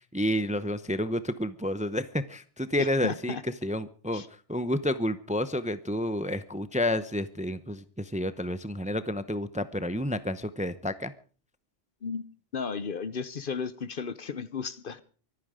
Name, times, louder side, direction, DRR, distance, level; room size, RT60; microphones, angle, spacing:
voice 1, 0.1-4.2 4.5-11.1, left 1 dB, 10° right, 0.6 m, -30 dB
voice 2, 2.8-3.4 4.1-4.3 12.0-12.2 12.5-15.0, left 5 dB, 55° left, 1.0 m, -34 dB
24.5 x 9.4 x 5.0 m
omnidirectional pair, 1.2 m